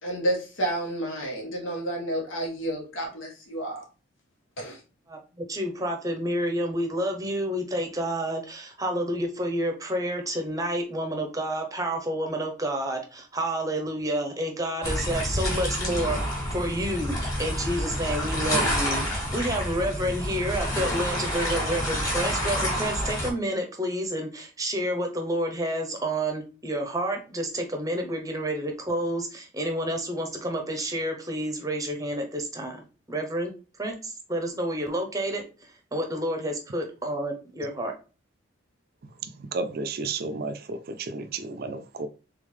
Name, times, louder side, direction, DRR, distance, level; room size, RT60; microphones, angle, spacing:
voice 1, 0.0-3.8 4.6-4.8, right 1 dB, 75° left, -1 dB, 1.5 m, -30 dB
voice 2, 5.5-32.8 33.1-33.5 33.8-35.4 35.9-37.9, right 1 dB, 15° right, 3 dB, 0.7 m, -29 dB
sound 1, 14.8-23.3, equal, 15° left, 1.6 m, -28 dB
voice 3, 39.2-42.1, right 4 dB, 50° right, 10 dB, 0.4 m, -32 dB
3.7 x 3.5 x 3.2 m, 0.34 s
head